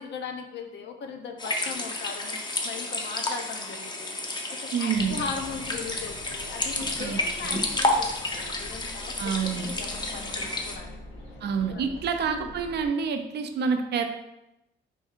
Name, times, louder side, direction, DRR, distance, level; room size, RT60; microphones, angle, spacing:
voice 1, 0.0-11.2 11.7-12.5, left 5 dB, 65° left, 4 dB, 0.6 m, -39 dB
sound 1, 1.4-10.8, left 2 dB, 20° left, 0.5 m, -31 dB
voice 2, 4.7-5.2 7.0-7.6 9.2-9.7 11.4-14.0, right 6 dB, 60° right, 6 dB, 0.5 m, -28 dB
sound 2, 4.9-12.9, left 1 dB, 90° left, 1.0 m, -44 dB
3.4 x 2.4 x 4.4 m, 0.90 s
cardioid pair, 90°, 20 cm